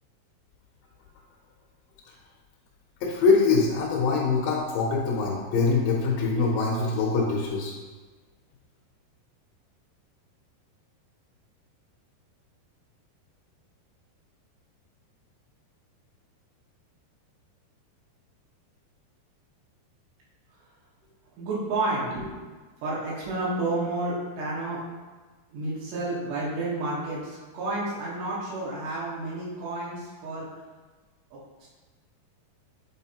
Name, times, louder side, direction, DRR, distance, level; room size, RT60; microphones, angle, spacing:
voice 1, 3.0-7.7, left 4 dB, 75° left, -3 dB, 2.2 m, -23 dB
voice 2, 21.4-22.3 22.8-24.8 25.5-30.5 31.6-31.7, right 2 dB, 75° right, -7 dB, 3.3 m, -30 dB
8.0 x 4.0 x 2.9 m, 1.3 s
omnidirectional pair, 4.9 m